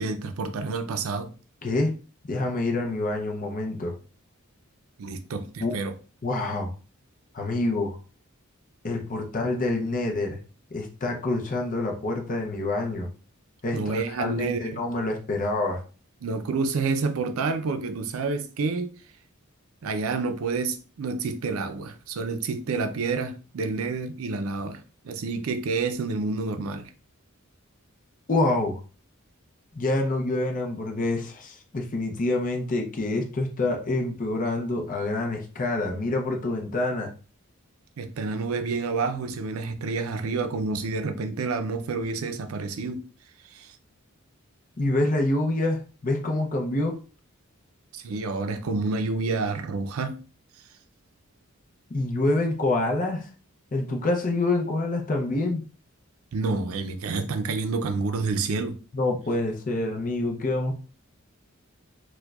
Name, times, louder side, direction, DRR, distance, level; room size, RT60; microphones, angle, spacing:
voice 1, 0.0-1.3 5.0-5.9 13.7-14.8 16.2-18.9 19.8-26.9 38.0-43.0 43.5-43.8 47.9-50.2 56.3-58.8, right 4 dB, 80° right, 0.4 m, -29 dB
voice 2, 2.3-3.9 5.6-5.7 6.2-6.7 7.3-8.0 8.8-10.4 10.7-13.1 13.6-15.8 28.3-28.8 29.7-37.1 44.8-47.0 51.9-53.3 53.7-55.6 58.9-60.7, left 2 dB, 40° left, 0.6 m, -26 dB
4.5 x 2.2 x 2.3 m
head